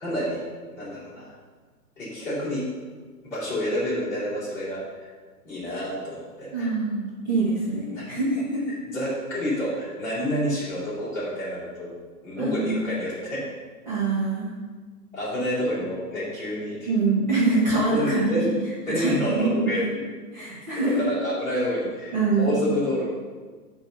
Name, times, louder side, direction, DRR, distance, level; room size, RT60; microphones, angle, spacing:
voice 1, 0.0-0.4 0.8-1.3 2.0-2.6 3.2-5.1 5.4-6.7 7.9-8.2 8.9-11.9 12.2-13.4 15.1-16.9 17.9-18.5 18.9-19.8 20.7-23.1, equal, 5° left, -14 dB, 2.5 m, -28 dB
voice 2, 6.5-8.7 12.4-12.8 13.9-14.5 16.9-18.4 18.9-19.5 19.8-19.9 20.3-21.0 22.1-22.6, right 3 dB, 30° right, -8 dB, 1.5 m, -24 dB
8.3 x 3.9 x 6.8 m, 1.4 s
hypercardioid pair, 175°, 49 cm